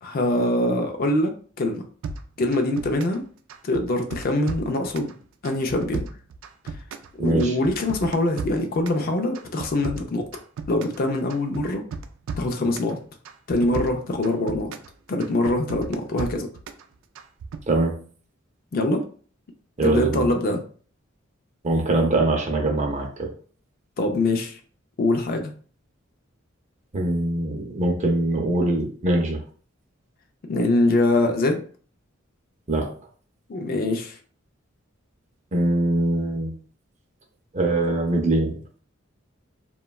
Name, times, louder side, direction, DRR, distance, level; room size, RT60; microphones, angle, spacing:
voice 1, 0.0-1.8 2.4-3.2 3.6-5.1 5.4-6.1 7.2-10.2 10.7-11.8 12.4-13.0 13.5-14.7 15.1-16.5 18.7-19.0 19.8-20.6 24.0-24.6 25.0-25.5 30.5-31.6 33.5-34.2, left 2 dB, 45° left, 4 dB, 0.4 m, -23 dB
sound 1, 2.0-3.2 3.5-5.1 5.4-7.1 7.4-9.0 9.3-11.0 11.3-12.9 13.3-14.9 15.2-16.8 17.2-17.6, right 4 dB, 85° right, 0.3 m, -34 dB
voice 2, 7.2-7.6 17.7-18.0 19.8-20.3 21.6-23.3 26.9-29.4 32.7-32.9 35.5-36.5 37.5-38.6, right 2 dB, 35° right, 2 dB, 0.5 m, -22 dB
3.0 x 2.2 x 2.3 m, 0.43 s
head